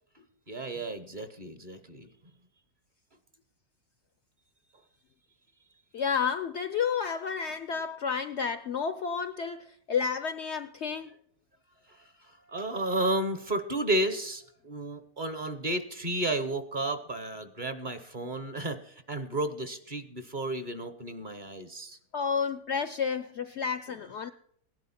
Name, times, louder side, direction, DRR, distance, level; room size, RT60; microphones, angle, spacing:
voice 1, 0.5-2.1 12.5-22.0, right 1 dB, 35° right, 1.0 m, -32 dB
voice 2, 5.9-11.1 22.1-24.3, left 6 dB, 60° left, 0.8 m, -31 dB
17.0 x 11.0 x 4.2 m
omnidirectional pair, 1.6 m